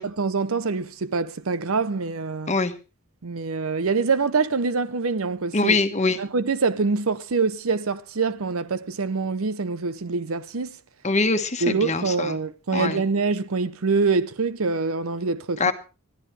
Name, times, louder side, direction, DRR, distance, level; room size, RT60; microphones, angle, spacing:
voice 1, 0.0-2.5 3.2-5.8 6.2-10.8 11.6-15.7, right 4 dB, 85° right, 0.8 m, -25 dB
voice 2, 5.5-6.2 11.0-12.4 12.7-13.0 15.6-15.7, left 3 dB, 35° left, 1.3 m, -23 dB
21.5 x 13.0 x 3.3 m
head